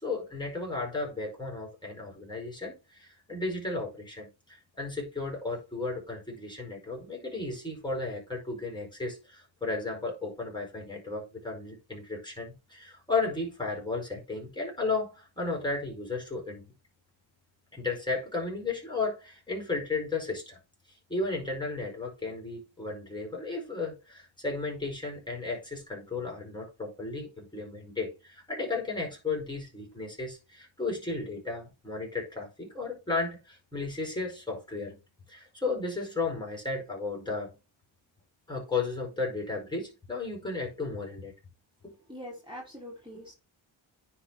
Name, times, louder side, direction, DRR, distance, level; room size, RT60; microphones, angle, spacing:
voice 1, 0.0-16.7 17.7-20.6 21.1-35.0 35.3-37.5 38.5-41.3 41.8-42.0, left 3 dB, 10° left, 4.8 m, -34 dB
voice 2, 42.1-43.3, equal, 10° right, 3.2 m, -43 dB
9.9 x 4.3 x 4.1 m
cardioid pair, 75°, 47 cm